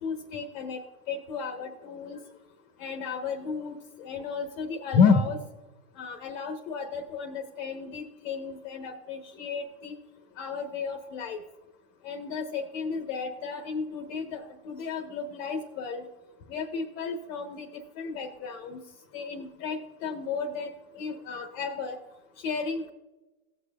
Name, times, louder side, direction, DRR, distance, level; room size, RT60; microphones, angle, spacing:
voice 1, 0.0-0.8 1.1-2.2 2.8-5.4 6.0-9.9 10.4-11.4 12.0-16.0 16.5-17.7 18.0-18.8 19.1-22.0 22.4-22.9, left 5 dB, 45° left, 4 dB, 1.1 m, -32 dB
17.5 x 6.6 x 2.4 m, 1.1 s
hypercardioid pair, 130°, 48 cm